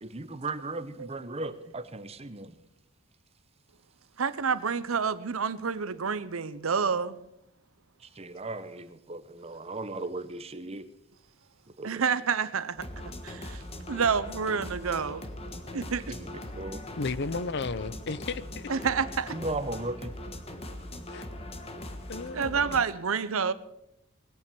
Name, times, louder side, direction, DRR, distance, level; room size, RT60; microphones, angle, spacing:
voice 1, 0.0-2.6 8.0-10.9 11.8-12.0 16.1-16.8 19.3-20.2, right 2 dB, 30° right, 0.9 m, -37 dB
voice 2, 4.2-7.2 11.8-12.9 13.2-15.3 15.7-16.2 18.7-19.4 22.3-23.5, right 6 dB, 90° right, 0.8 m, -28 dB
sound 1, 12.8-22.8, left 1 dB, 30° left, 1.4 m, -40 dB
voice 3, 17.0-18.7 21.1-21.3 22.1-22.8, left 4 dB, 55° left, 0.6 m, -34 dB
20.5 x 8.5 x 6.9 m
head